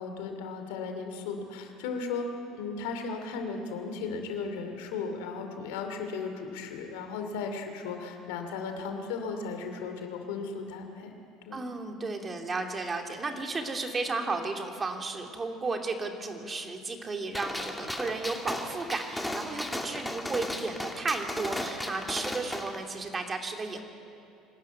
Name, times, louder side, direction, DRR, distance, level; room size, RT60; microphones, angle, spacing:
voice 1, 0.0-11.1 11.4-11.6, left 4 dB, 75° left, 5 dB, 2.6 m, -36 dB
voice 2, 11.5-23.8, right 3 dB, 30° right, 3 dB, 2.7 m, -33 dB
Gunshot gunfire, 17.3-22.8, left 1 dB, 5° left, 2.3 m, -36 dB
24.0 x 13.0 x 9.4 m, 2.5 s
hypercardioid pair, 75°, 0 cm